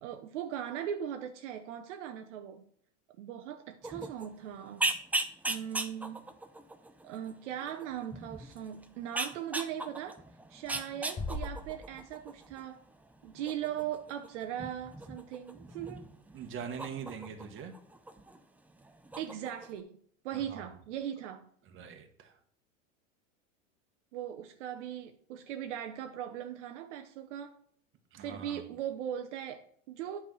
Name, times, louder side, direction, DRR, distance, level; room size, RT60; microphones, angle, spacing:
voice 1, 0.0-2.6 3.2-4.9 5.5-6.3 7.0-10.2 10.5-12.8 13.2-16.1 19.2-21.5 24.1-27.6 28.2-30.2, right 10 dB, 65° right, 0.8 m, -39 dB
sound 1, 3.8-18.4 18.7-19.8, right 2 dB, 5° right, 0.4 m, -39 dB
Bass drum, 11.2-12.6, left 2 dB, 20° left, 1.2 m, -40 dB
voice 2, 16.3-17.8 20.3-20.7 21.6-22.4 28.1-28.7, right 7 dB, 30° right, 1.3 m, -43 dB
9.1 x 3.6 x 6.1 m
hypercardioid pair, 95°, 38 cm